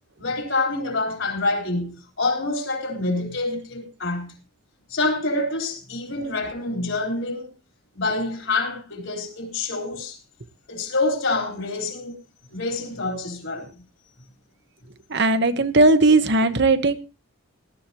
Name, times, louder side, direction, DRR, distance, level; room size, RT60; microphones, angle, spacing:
voice 1, 0.2-4.4 4.9-7.5 7.9-10.2 10.7-12.2 12.5-13.7, left 2 dB, 60° left, 4.3 m, -26 dB
voice 2, 15.1-16.9, right 2 dB, 50° right, 1.1 m, -17 dB
18.5 x 12.5 x 3.0 m
head